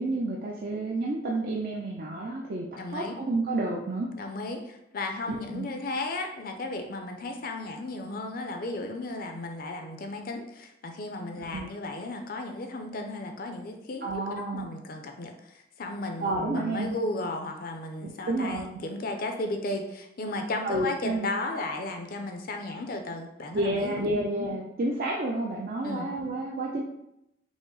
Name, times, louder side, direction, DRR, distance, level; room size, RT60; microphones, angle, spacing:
voice 1, 0.0-2.7 2.9-4.1 5.5-5.7 11.4-11.6 14.0-14.7 16.2-16.9 18.0-18.7 20.6-21.3 23.5-26.8, right 2 dB, 50° right, -3 dB, 0.5 m, -30 dB
voice 2, 2.8-3.2 4.2-14.1 14.4-24.0 25.8-26.1, left 2 dB, 50° left, 5 dB, 0.5 m, -35 dB
5.0 x 2.1 x 3.8 m, 0.83 s
head